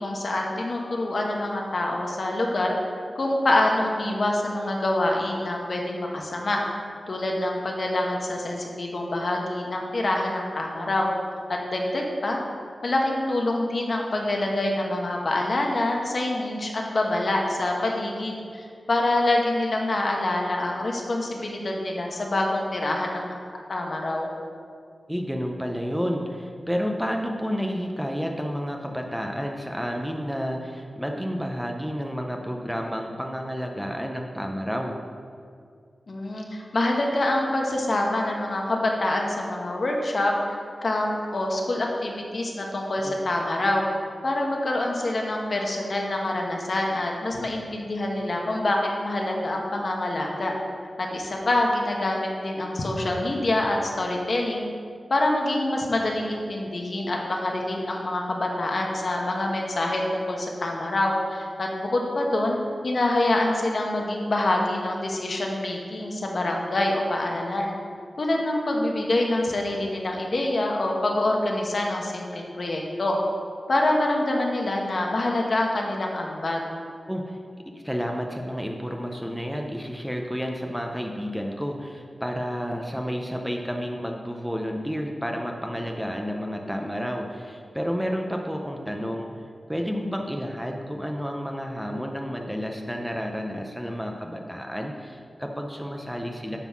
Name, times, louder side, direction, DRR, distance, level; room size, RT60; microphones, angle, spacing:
voice 1, 0.0-2.8 3.1-6.6 7.1-11.1 11.5-12.4 12.8-23.3 23.7-24.3 36.1-43.8 44.2-50.5 51.0-54.7 55.1-62.6 62.8-67.7 68.2-73.2 73.7-76.6, left 1 dB, 55° left, 0 dB, 1.1 m, -26 dB
voice 2, 25.1-35.0 43.0-43.1 77.1-77.4 77.7-89.3 89.7-96.6, equal, 5° right, 2 dB, 0.6 m, -30 dB
9.1 x 4.0 x 6.0 m, 2.2 s
wide cardioid pair, 110°, 0 cm